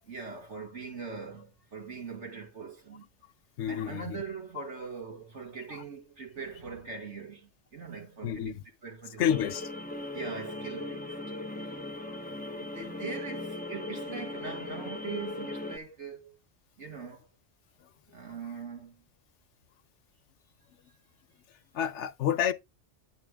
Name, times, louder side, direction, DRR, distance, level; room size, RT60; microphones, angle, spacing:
voice 1, 0.1-3.1 3.7-9.5 10.1-11.2 11.6-11.8 12.2-16.4 16.8-17.3 18.1-19.1, right 5 dB, 70° right, 2.6 m, -42 dB
voice 2, 3.6-4.2 8.2-8.6 9.2-9.6 21.7-22.5, left 9 dB, 70° left, 1.0 m, -29 dB
sound 1, 9.3-15.8, left 2 dB, 10° left, 0.6 m, -38 dB
9.7 x 6.2 x 3.5 m
omnidirectional pair, 1.3 m